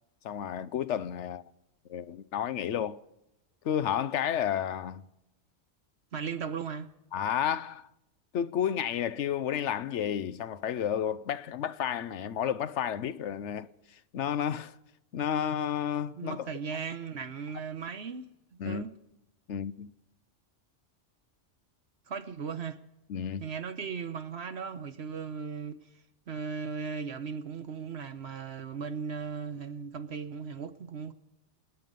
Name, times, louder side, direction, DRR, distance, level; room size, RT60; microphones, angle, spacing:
voice 1, 0.2-1.4 1.9-3.0 3.6-5.1 7.1-7.9 8.3-14.7 15.1-16.5 18.6-18.8 19.5-19.9 23.1-23.4, left 9 dB, 75° left, 1.1 m, -31 dB
voice 2, 6.1-6.9 16.2-18.3 18.6-18.9 22.1-22.8 23.4-25.8 26.3-31.1, right 6 dB, 65° right, 1.1 m, -37 dB
28.0 x 9.6 x 5.4 m
omnidirectional pair, 1.2 m